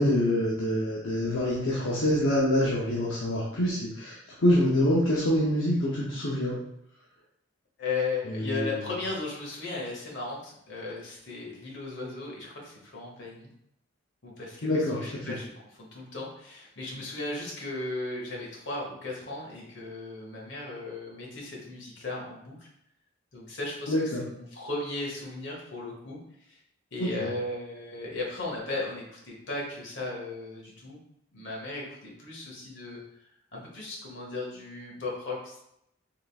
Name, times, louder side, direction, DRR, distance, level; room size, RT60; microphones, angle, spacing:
voice 1, 0.0-6.5 8.2-8.8 14.6-15.3 23.9-24.2 27.0-27.1, left 1 dB, 80° left, -5 dB, 0.7 m, -26 dB
voice 2, 7.8-13.5 14.2-22.7 23.3-23.9 24.2-26.2 26.5-26.6 26.9-31.0 31.3-33.0 33.5-35.6, left 3 dB, 65° left, -2 dB, 1.1 m, -36 dB
3.7 x 3.4 x 2.4 m, 0.78 s
head